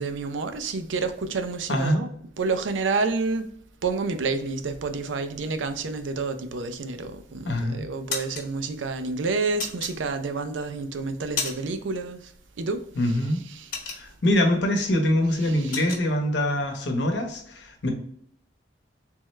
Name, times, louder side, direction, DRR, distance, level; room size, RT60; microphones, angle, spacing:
voice 1, 0.0-3.5 3.8-12.3 12.6-13.7 15.3-15.9, right 4 dB, 90° right, 0.5 m, -29 dB
voice 2, 1.7-2.0 7.5-7.9 13.0-13.4 14.0-17.9, left 1 dB, 70° left, 0.8 m, -24 dB
sound 1, 7.0-7.5 7.8-8.5 9.6-10.4 10.9-11.9 12.1-12.4 12.8-14.4 14.8-15.0 15.3-16.1, left 4 dB, 45° left, 0.9 m, -33 dB
3.4 x 3.2 x 3.1 m
head